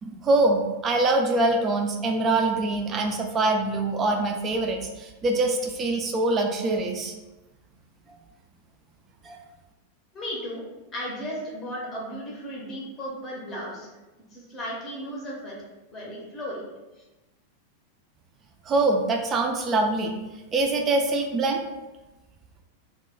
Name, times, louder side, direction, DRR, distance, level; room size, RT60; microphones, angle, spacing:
voice 1, 0.0-7.2 9.2-9.4 18.7-20.1 20.5-21.6, right 2 dB, 25° right, 2 dB, 0.3 m, -24 dB
voice 2, 10.1-10.6 10.9-13.9 14.3-15.6 15.9-16.6 16.9-17.0, equal, 25° left, -3 dB, 0.7 m, -35 dB
2.2 x 2.1 x 3.5 m, 1.1 s
figure-of-eight pair, 90°, 0 cm